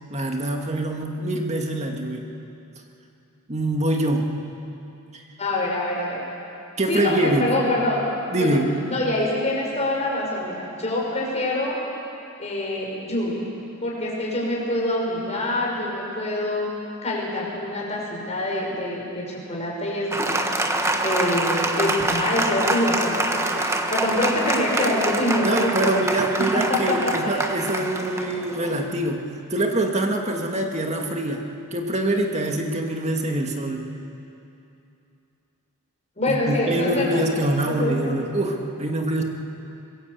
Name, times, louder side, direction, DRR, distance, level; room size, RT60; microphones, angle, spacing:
voice 1, 0.1-2.3 3.5-4.4 5.1-5.2 6.8-7.5 8.3-8.7 25.4-33.9 36.3-39.2, right 1 dB, 30° right, 2 dB, 2.1 m, -24 dB
voice 2, 5.4-6.2 6.9-8.0 8.4-8.6 8.9-11.8 12.4-13.4 13.8-16.7 17.0-20.5 21.0-23.6 23.9-25.7 26.5-27.0 27.3-27.4 36.2-37.2 37.8-38.2, left 1 dB, 30° left, -3 dB, 6.2 m, -25 dB
Applause, 20.1-29.1, right 2 dB, 15° right, 1.3 m, -25 dB
24.0 x 21.0 x 8.4 m, 2.8 s
head